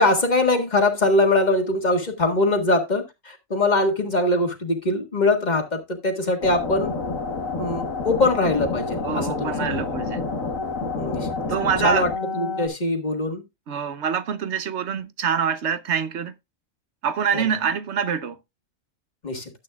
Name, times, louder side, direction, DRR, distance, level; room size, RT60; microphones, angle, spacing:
voice 1, 0.0-7.0 7.6-9.8 10.9-11.3 11.8-13.4 17.3-17.5 19.2-19.5, left 2 dB, 35° left, 1.8 m, -22 dB
sound 1, 6.4-12.7, left 3 dB, 85° left, 1.8 m, -28 dB
voice 2, 9.0-10.2 11.5-12.1 13.7-16.3 17.0-18.4, right 7 dB, 60° right, 1.1 m, -25 dB
12.5 x 8.4 x 2.4 m
omnidirectional pair, 1.3 m